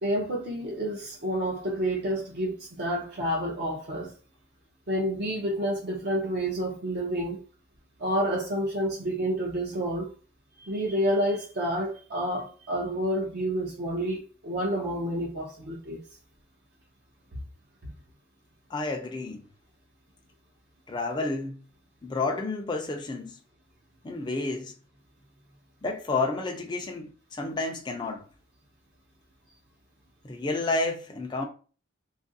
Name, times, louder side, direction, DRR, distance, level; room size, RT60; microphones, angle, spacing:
voice 1, 0.0-4.1 4.9-7.4 8.0-10.1 10.6-16.0, equal, 50° right, 0.6 m, -29 dB
voice 2, 18.7-19.4 20.9-21.6 22.0-23.4 24.0-24.7 25.8-28.2 30.2-31.4, left 3 dB, 20° left, 0.4 m, -30 dB
3.0 x 2.5 x 2.6 m
head